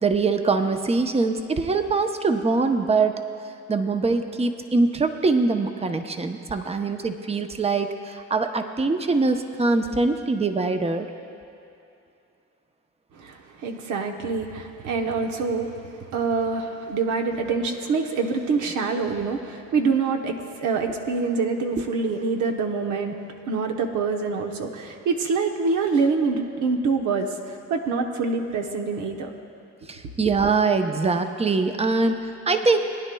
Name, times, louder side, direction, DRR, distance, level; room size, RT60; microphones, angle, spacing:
voice 1, 0.0-3.2 3.7-11.1 29.9-32.8, right 3 dB, 20° right, 7 dB, 0.7 m, -23 dB
voice 2, 13.1-23.2 23.5-29.3, right 4 dB, 80° right, 3 dB, 1.0 m, -25 dB
21.0 x 10.0 x 2.3 m, 2.6 s
cardioid pair, 90°, 30 cm